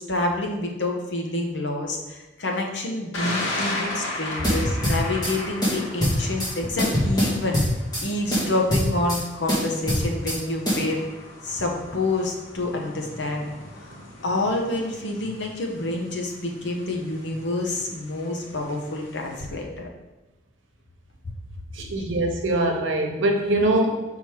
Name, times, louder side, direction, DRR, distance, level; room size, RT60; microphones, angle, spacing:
voice 1, 0.0-7.6 8.0-11.0 11.4-13.5 14.2-19.9 22.0-22.1, left 2 dB, 65° left, 1 dB, 1.1 m, -28 dB
Thunder, 3.1-19.4, left 2 dB, 85° left, 1.5 m, -37 dB
sound 1, 4.4-5.3 5.6-6.5 6.8-8.1 8.3-9.2 9.5-10.4 10.7-10.8, equal, 20° left, 2.0 m, -23 dB
voice 2, 21.7-24.0, right 1 dB, 85° right, 2 dB, 1.1 m, -23 dB
6.2 x 3.7 x 4.8 m, 1.1 s
head